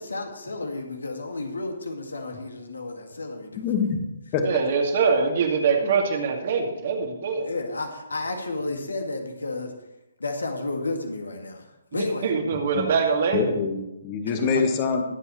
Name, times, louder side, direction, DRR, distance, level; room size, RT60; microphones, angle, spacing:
voice 1, 0.0-3.6 7.4-9.7 10.2-12.3 14.3-14.6, left 2 dB, 70° left, 3 dB, 2.1 m, -32 dB
voice 2, 3.6-4.5 12.7-12.9 13.3-15.0, left 5 dB, 25° left, 5 dB, 1.7 m, -25 dB
voice 3, 4.4-7.5 11.9-13.5, right 5 dB, 45° right, 2 dB, 2.4 m, -23 dB
22.0 x 8.2 x 3.2 m, 0.94 s
figure-of-eight pair, 135°, 0 cm